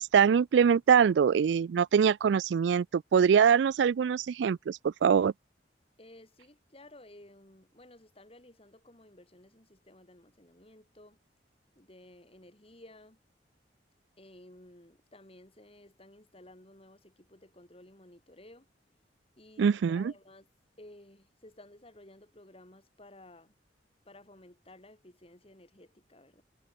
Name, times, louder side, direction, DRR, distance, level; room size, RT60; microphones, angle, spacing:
voice 1, 0.0-5.3 19.6-20.1, right 7 dB, 85° right, 0.3 m, -23 dB
voice 2, 6.0-11.2 11.7-13.2 14.2-18.7 19.4-20.5 20.8-23.5 24.0-26.4, left 1 dB, 35° left, 4.6 m, -55 dB
head